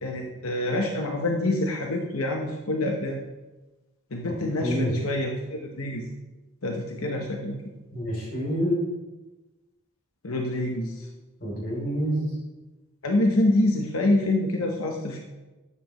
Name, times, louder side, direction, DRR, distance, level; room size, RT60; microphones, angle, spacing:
voice 1, 0.0-3.2 4.1-6.1 6.6-7.6 10.2-11.1 13.0-15.2, left 1 dB, 85° left, 1 dB, 1.0 m, -26 dB
voice 2, 4.6-4.9 7.9-8.9 11.4-12.3, equal, 45° left, -3 dB, 3.2 m, -27 dB
12.0 x 8.4 x 3.1 m, 1.1 s
head